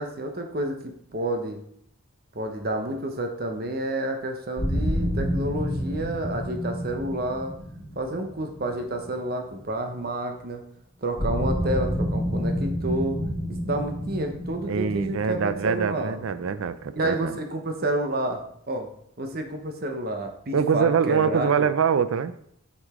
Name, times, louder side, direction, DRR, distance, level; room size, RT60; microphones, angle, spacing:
voice 1, 0.0-1.6 2.3-7.5 8.0-10.6 11.0-13.2 13.5-16.2 16.9-18.4 18.7-18.9 19.2-21.7, right 1 dB, 45° right, 5 dB, 0.9 m, -29 dB
sound 1, 4.6-9.5 11.2-16.8, equal, 55° left, 2.0 m, -29 dB
voice 2, 14.7-17.3 20.5-22.3, right 6 dB, 70° right, 13 dB, 0.4 m, -24 dB
6.5 x 5.3 x 3.7 m, 0.69 s
head